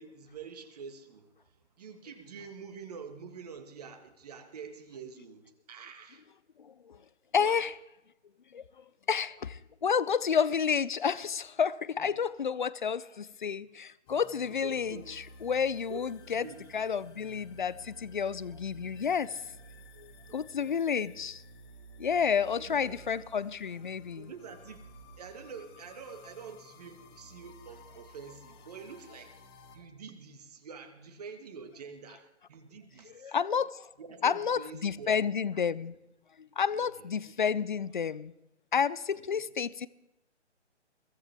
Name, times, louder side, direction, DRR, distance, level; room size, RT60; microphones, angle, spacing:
voice 1, 0.0-6.2 7.4-7.7 12.0-12.1 14.5-15.0 15.9-16.6 20.3-20.7 22.0-22.1 22.6-23.0 24.2-24.9 25.2-29.3 29.7-33.4 34.0-35.2 36.7-37.1 39.3-39.4, right 5 dB, 35° right, 8 dB, 1.8 m, -47 dB
voice 2, 6.6-7.0 7.3-7.7 8.5-16.5 16.7-19.5 20.0-21.4 22.0-24.3 33.1-33.9 34.2-36.0 36.4-38.3 38.7-39.9, left 7 dB, 45° left, 19 dB, 0.6 m, -30 dB
sound 1, 14.1-29.8, equal, 20° left, 1.7 m, -53 dB
22.0 x 16.0 x 3.5 m, 0.91 s
figure-of-eight pair, 150°, 36 cm